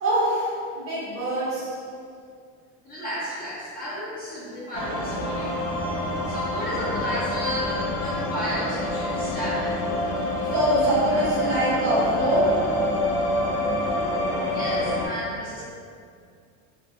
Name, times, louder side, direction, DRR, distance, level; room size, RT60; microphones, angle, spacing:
voice 1, 0.0-1.8 10.5-12.6, equal, 35° right, -9 dB, 0.9 m, -24 dB
voice 2, 2.8-5.6 6.3-10.0 14.5-15.6, equal, 25° left, -10 dB, 0.8 m, -33 dB
sound 1, 4.7-15.1, left 1 dB, 45° left, 0.4 m, -27 dB
2.6 x 2.4 x 2.3 m, 2.3 s
cardioid pair, 135°, 36 cm